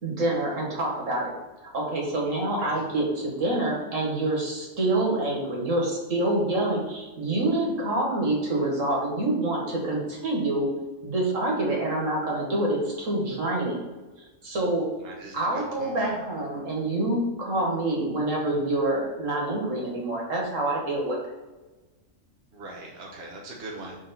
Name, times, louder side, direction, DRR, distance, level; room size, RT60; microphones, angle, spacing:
voice 1, 0.0-1.3 1.6-10.7 11.0-13.8 14.4-14.9 15.3-21.2, right 2 dB, 80° right, -2 dB, 2.2 m, -26 dB
voice 2, 15.0-16.2 22.5-24.0, right 2 dB, 55° right, -2 dB, 1.3 m, -40 dB
6.0 x 4.8 x 4.3 m, 1.2 s
omnidirectional pair, 1.3 m